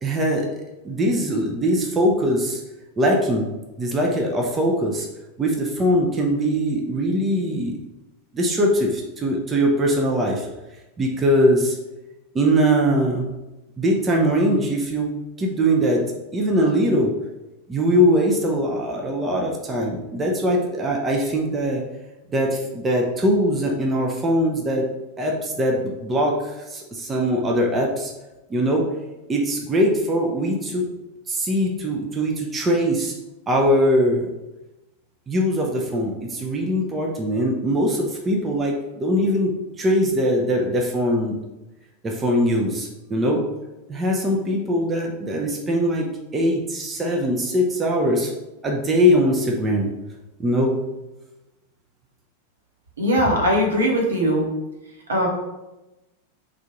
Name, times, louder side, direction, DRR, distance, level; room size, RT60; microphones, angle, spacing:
voice 1, 0.0-2.6 3.0-3.5 3.8-5.1 5.4-7.7 8.3-10.5 11.0-11.8 12.3-13.4 13.8-15.1 15.4-16.0 16.3-17.1 17.7-21.8 22.3-24.9 25.2-28.1 28.5-28.8 29.3-30.9 31.3-33.1 33.5-34.3 35.3-41.4 42.0-43.4 43.9-46.1 46.3-48.3 48.6-49.9 50.4-50.8, equal, 20° right, -1 dB, 0.6 m, -21 dB
voice 2, 53.0-54.4 55.1-55.3, equal, 70° right, -1 dB, 1.0 m, -20 dB
3.6 x 2.5 x 4.4 m, 1.0 s
figure-of-eight pair, 90°, 0 cm